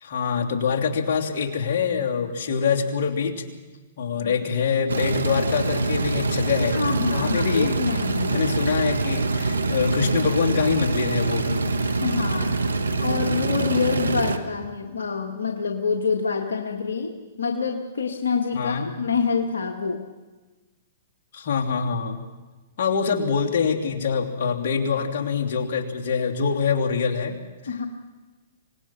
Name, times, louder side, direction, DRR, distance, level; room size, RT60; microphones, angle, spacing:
voice 1, 0.0-3.4 4.0-6.8 7.1-7.7 8.3-11.6 18.5-18.9 21.3-22.2 22.8-27.7, left 6 dB, 55° left, 0 dB, 3.1 m, -25 dB
sound 1, 4.9-14.4, right 3 dB, 90° right, 1.5 m, -25 dB
voice 2, 6.6-8.4 12.0-12.6 13.0-20.1 27.7-27.8, left 5 dB, 80° left, 2 dB, 1.6 m, -26 dB
25.5 x 19.0 x 6.0 m, 1.3 s
hypercardioid pair, 125°, 0 cm